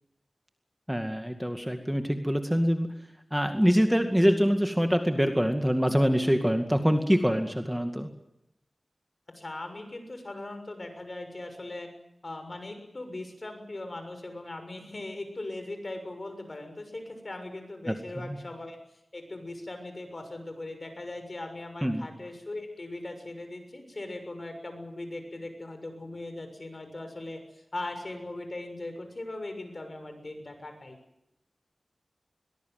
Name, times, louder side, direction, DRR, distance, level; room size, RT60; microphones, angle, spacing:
voice 1, 0.9-2.9 3.3-8.1 17.9-18.4 21.8-22.0, equal, 5° right, 6 dB, 2.2 m, -25 dB
voice 2, 9.3-11.9 12.2-18.8 19.1-31.0, left 2 dB, 50° left, 7 dB, 6.6 m, -39 dB
22.5 x 20.5 x 9.5 m, 0.83 s
wide cardioid pair, 60°, 0 cm